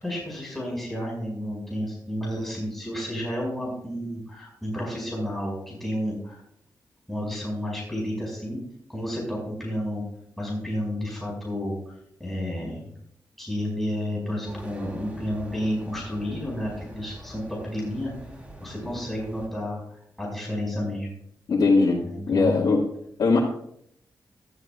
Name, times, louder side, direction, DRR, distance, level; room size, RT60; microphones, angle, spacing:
voice 1, 0.0-6.4 7.1-8.6 8.9-10.0 10.4-11.8 12.2-12.8 13.4-18.1 18.6-19.8 20.2-21.1 22.0-22.6, equal, 5° left, -3 dB, 5.6 m, -31 dB
sound 1, 14.5-19.5, right 1 dB, 20° right, 3.3 m, -44 dB
voice 2, 21.5-22.8 23.2-23.4, left 3 dB, 90° left, -4 dB, 2.0 m, -20 dB
18.5 x 13.5 x 2.4 m, 0.72 s
wide cardioid pair, 105°, 7 cm